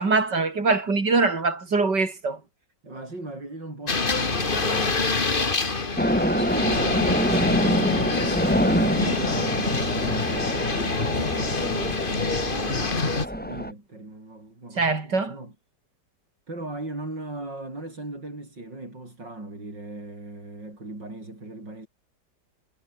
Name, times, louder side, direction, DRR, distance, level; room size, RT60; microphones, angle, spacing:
voice 1, 0.0-2.4 14.8-15.3, right 3 dB, 70° right, 4.7 m, -23 dB
voice 2, 2.8-5.0 5.9-15.6 16.5-21.9, right 2 dB, 90° right, 8.9 m, -38 dB
gutierrez mpaulina baja fidelidad industria confección, 3.9-13.3, left 3 dB, 30° left, 2.0 m, -26 dB
sound 1, 6.0-13.7, equal, 5° left, 8.0 m, -25 dB
omnidirectional pair, 1.9 m